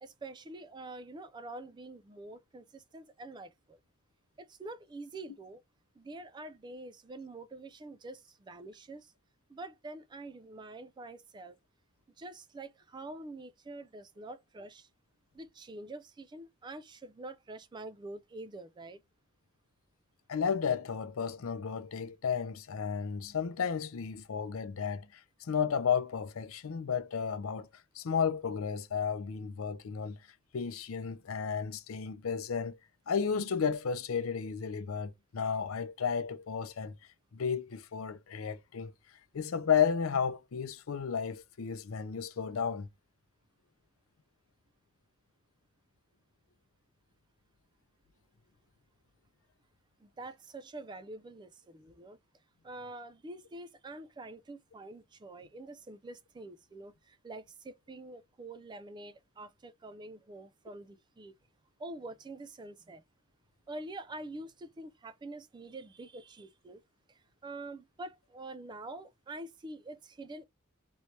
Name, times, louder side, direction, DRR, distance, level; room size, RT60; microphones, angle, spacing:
voice 1, 0.0-3.8 4.4-5.6 6.0-9.1 9.5-11.6 12.2-14.9 15.3-19.0 50.0-52.2 52.6-61.4 61.8-63.0 63.7-66.8 67.1-70.4, right 2 dB, 20° right, 0.3 m, -46 dB
voice 2, 20.3-27.7 27.9-30.2 30.5-32.8 33.1-36.9 37.3-38.9 39.3-42.9, left 6 dB, 70° left, 0.5 m, -33 dB
3.1 x 3.1 x 2.7 m
head